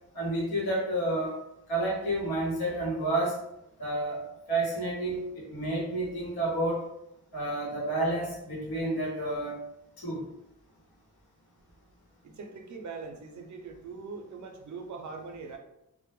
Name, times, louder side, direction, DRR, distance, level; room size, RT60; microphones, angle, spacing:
voice 1, 0.1-1.4 1.7-3.3 3.8-4.2 4.5-6.8 7.3-9.5 10.0-10.2, right 1 dB, 90° left, -5 dB, 1.0 m, -30 dB
voice 2, 12.2-15.6, right 4 dB, 50° right, 4 dB, 0.5 m, -42 dB
2.1 x 2.0 x 2.9 m, 0.83 s
wide cardioid pair, 80°, 36 cm